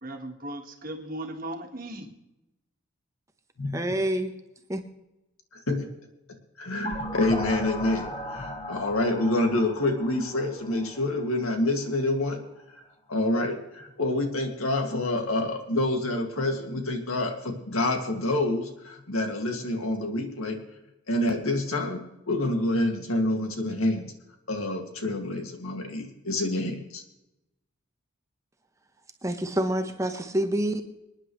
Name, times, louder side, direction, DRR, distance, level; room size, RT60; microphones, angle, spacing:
voice 1, 0.0-2.1, right 1 dB, 40° right, 3 dB, 1.7 m, -37 dB
voice 2, 3.7-4.3 4.7-4.8 29.2-30.8, right 1 dB, 15° right, 7 dB, 0.9 m, -27 dB
voice 3, 5.5-5.9 6.6-12.4 13.1-20.6 21.1-24.1 24.5-27.0, left 1 dB, 80° left, 3 dB, 2.1 m, -27 dB
sound 1, 6.8-11.5, left 1 dB, 25° left, 1.4 m, -37 dB
26.0 x 10.0 x 3.2 m, 0.92 s
head